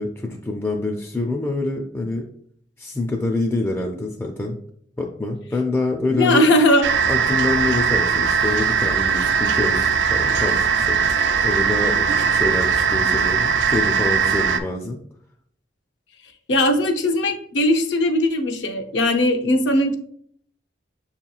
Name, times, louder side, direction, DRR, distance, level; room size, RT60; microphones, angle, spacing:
voice 1, 0.0-2.2 2.8-4.6 5.0-6.5 7.1-15.0, left 2 dB, 15° left, 1 dB, 0.3 m, -26 dB
voice 2, 6.1-6.9 16.5-19.9, left 1 dB, 75° left, 5 dB, 0.6 m, -19 dB
sound 1, 6.8-14.6, right 6 dB, 70° right, 0.4 m, -20 dB
6.8 x 2.9 x 2.3 m, 0.63 s
head